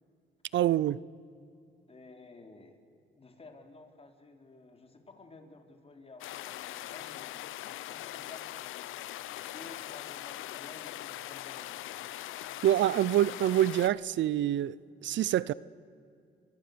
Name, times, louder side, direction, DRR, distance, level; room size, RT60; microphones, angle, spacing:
voice 1, 0.5-1.0 12.6-14.8 15.0-15.5, right 12 dB, 70° right, 0.6 m, -26 dB
voice 2, 1.9-2.9 3.1-7.4 7.9-8.5 9.4-12.0, left 3 dB, 30° left, 4.0 m, -53 dB
sound 1, 6.2-13.9, left 14 dB, 85° left, 0.8 m, -41 dB
29.5 x 22.5 x 6.9 m
cardioid pair, 90°, 20 cm